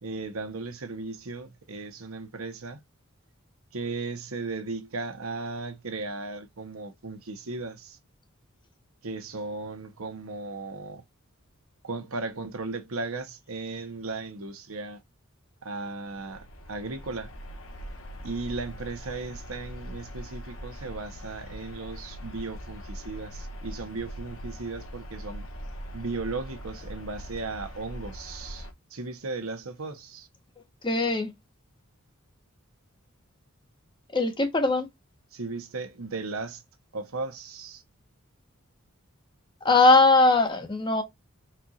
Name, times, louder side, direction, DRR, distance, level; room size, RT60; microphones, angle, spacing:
voice 1, 0.0-2.8 3.7-8.0 9.0-11.0 11.8-15.0 15.6-17.3 18.2-25.5 25.9-30.3 35.3-36.6 36.9-37.8, right 3 dB, 80° right, 1.0 m, -36 dB
sound 1, 16.1-28.7, equal, 75° left, 1.3 m, -41 dB
voice 2, 30.8-31.3 34.1-34.9 39.6-41.0, left 3 dB, 20° left, 1.0 m, -20 dB
4.3 x 2.5 x 4.1 m
head